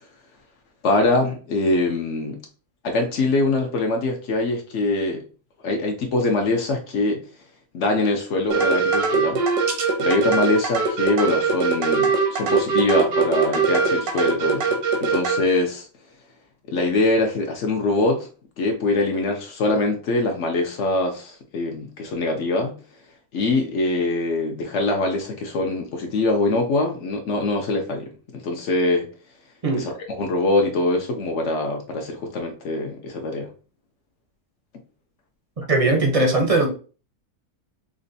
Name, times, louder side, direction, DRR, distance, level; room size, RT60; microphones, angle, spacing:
voice 1, 0.8-2.4 2.8-5.2 5.6-7.2 7.7-9.4 10.0-15.9 16.7-18.3 18.6-22.8 23.3-29.1 29.7-33.5, left 2 dB, 60° left, 0.8 m, -23 dB
sound 1, 8.5-15.4, right 5 dB, 80° right, 1.3 m, -21 dB
voice 2, 35.6-36.7, right 2 dB, 40° right, 0.5 m, -19 dB
5.0 x 2.2 x 2.6 m
omnidirectional pair, 1.6 m